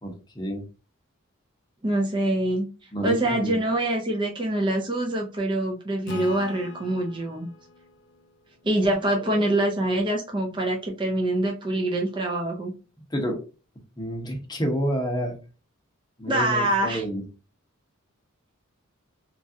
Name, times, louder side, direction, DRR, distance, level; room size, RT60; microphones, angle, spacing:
voice 1, 0.0-0.6 2.9-3.6 9.3-9.5 13.1-13.4 14.0-15.4 16.2-17.2, equal, 20° left, 2 dB, 0.7 m, -29 dB
voice 2, 1.8-2.7 3.0-7.5 8.6-12.7 16.3-17.0, right 1 dB, 20° right, 0 dB, 0.5 m, -25 dB
Acoustic guitar / Strum, 6.1-9.5, left 7 dB, 55° left, 0.4 m, -43 dB
3.2 x 2.4 x 2.6 m, 0.34 s
head